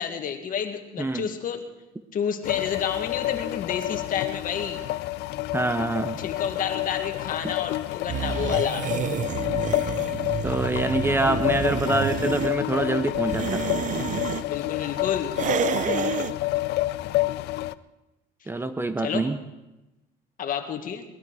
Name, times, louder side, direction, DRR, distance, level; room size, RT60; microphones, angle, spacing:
voice 1, 0.0-1.6 2.1-4.8 6.2-8.9 14.5-15.3 19.0-19.2 20.4-21.0, left 8 dB, 55° left, 5 dB, 1.9 m, -30 dB
voice 2, 1.0-1.3 5.5-6.2 7.4-7.5 10.4-13.7 15.8-16.2 18.5-19.4, right 2 dB, 15° right, 11 dB, 0.8 m, -26 dB
sound 1, 2.4-17.7, left 17 dB, 85° left, 0.5 m, -29 dB
sound 2, 8.1-12.5 13.1-14.4 15.3-16.3, right 8 dB, 50° right, 0.7 m, -29 dB
19.5 x 13.0 x 4.8 m, 0.98 s
cardioid pair, 110°, 17 cm